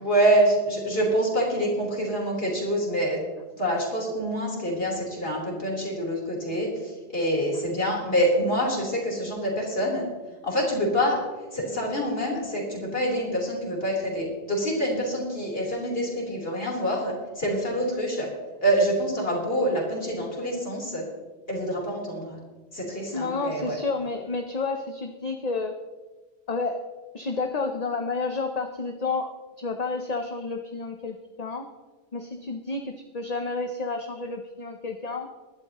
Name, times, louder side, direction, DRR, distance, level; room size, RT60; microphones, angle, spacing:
voice 1, 0.0-3.2 3.6-10.0 10.4-11.2 11.5-18.3 18.6-21.0 21.5-22.4 22.7-23.8, equal, 60° left, -2 dB, 4.1 m, -26 dB
voice 2, 23.1-25.7 26.5-26.8 27.1-29.3 29.6-31.7 32.1-35.3, left 3 dB, 40° left, 5 dB, 0.8 m, -30 dB
20.0 x 12.0 x 3.0 m, 1.2 s
omnidirectional pair, 1.1 m